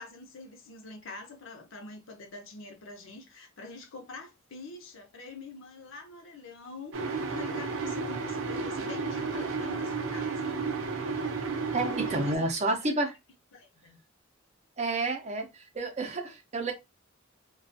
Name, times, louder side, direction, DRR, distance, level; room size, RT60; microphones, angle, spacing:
voice 1, 0.0-10.6 12.1-12.5 12.8-12.9 13.5-14.0, left 3 dB, 75° left, 0.7 m, -46 dB
sound 1, 6.9-12.4, right 4 dB, 90° right, 0.5 m, -32 dB
voice 2, 11.7-13.1 14.8-16.7, right 2 dB, 35° right, 0.5 m, -30 dB
2.4 x 2.3 x 2.5 m
head